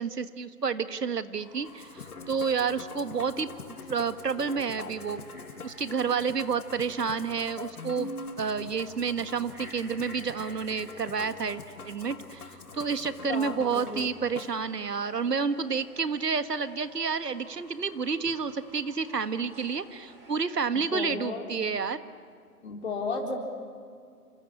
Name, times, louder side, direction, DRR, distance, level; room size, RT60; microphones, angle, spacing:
voice 1, 0.0-3.5 3.9-5.2 5.6-22.0, right 5 dB, 80° right, 12 dB, 1.7 m, -30 dB
Fowl / Bird, 1.3-20.5, right 1 dB, 5° right, 2.9 m, -53 dB
Musical instrument, 1.6-14.5, left 5 dB, 65° left, 1.7 m, -44 dB
voice 2, 13.3-14.1 20.9-21.4 22.6-23.4, left 4 dB, 45° left, 1 dB, 4.0 m, -33 dB
27.0 x 25.5 x 8.7 m, 2.3 s
hypercardioid pair, 170°, 47 cm